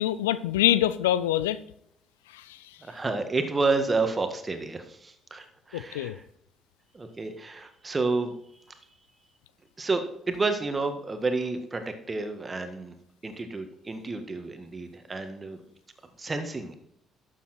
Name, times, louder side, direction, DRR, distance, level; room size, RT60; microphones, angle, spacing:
voice 1, 0.0-1.6 2.3-2.4 5.7-6.2, left 12 dB, 85° left, 16 dB, 0.4 m, -25 dB
voice 2, 2.8-6.2 6.9-8.3 9.8-12.9 13.2-15.6 16.2-16.7, right 3 dB, 30° right, 7 dB, 1.8 m, -30 dB
12.0 x 7.4 x 4.4 m, 0.72 s
hypercardioid pair, 50°, 0 cm